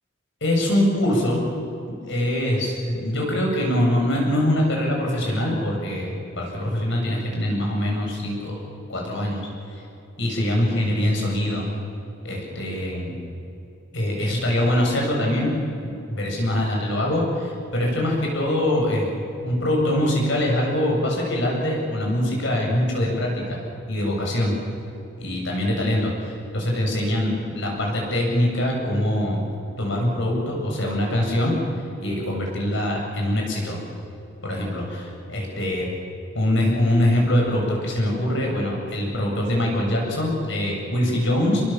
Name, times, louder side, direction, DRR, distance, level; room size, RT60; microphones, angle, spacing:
voice 1, 0.4-1.4 1.9-8.6 8.9-9.5 10.2-11.7 12.2-13.1 13.9-23.6 23.9-24.5 25.2-29.4 29.8-31.6 32.0-33.8 34.4-35.9 36.3-41.6, left 1 dB, 65° left, -1 dB, 7.8 m, -23 dB
28.0 x 22.5 x 7.5 m, 2.9 s
head